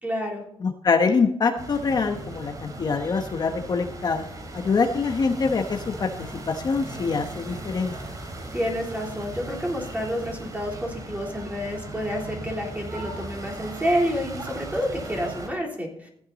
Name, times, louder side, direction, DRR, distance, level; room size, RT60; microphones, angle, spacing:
voice 1, 0.0-0.4 8.5-16.1, equal, 15° right, -1 dB, 3.5 m, -29 dB
voice 2, 0.6-4.3 4.5-7.9, left 4 dB, 40° left, 4 dB, 0.9 m, -24 dB
sound 1, 1.6-15.5, right 2 dB, 35° right, 2.7 m, -38 dB
14.5 x 9.1 x 4.1 m, 0.68 s
cardioid pair, 120°, 11 cm